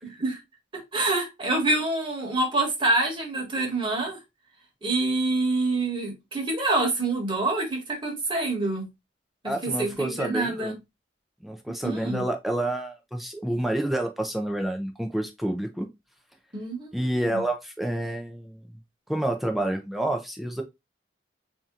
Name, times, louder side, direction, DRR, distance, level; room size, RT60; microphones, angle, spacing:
voice 1, 0.7-4.2 4.8-8.8 9.4-10.7 11.8-12.2 16.5-17.4, right 2 dB, 25° right, 1.4 m, -26 dB
voice 2, 9.4-10.8 11.4-15.9 16.9-18.8 19.1-20.6, right 1 dB, ahead, 0.6 m, -29 dB
3.8 x 2.9 x 3.7 m
head